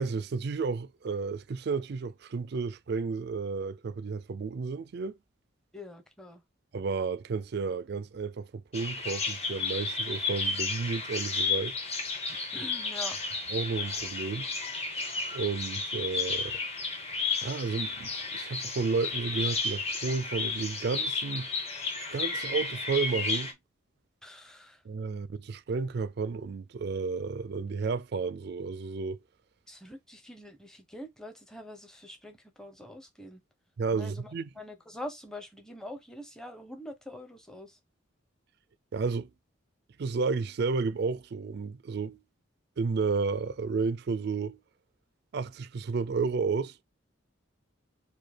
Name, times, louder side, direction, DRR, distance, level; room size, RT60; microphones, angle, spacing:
voice 1, 0.0-5.2 6.7-11.8 13.5-14.5 15.3-16.6 17.4-21.5 22.1-23.5 24.8-29.2 33.8-34.5 38.9-39.3 40.0-42.2 42.8-44.6 45.3-46.8, right 4 dB, 50° right, 0.4 m, -32 dB
voice 2, 5.7-6.4 12.3-13.2 24.2-24.8 29.7-33.4 33.9-37.8, left 1 dB, 5° left, 0.8 m, -44 dB
Bird vocalization bird call bird song, 8.7-23.5, left 4 dB, 30° left, 1.0 m, -33 dB
5.0 x 2.3 x 4.3 m
head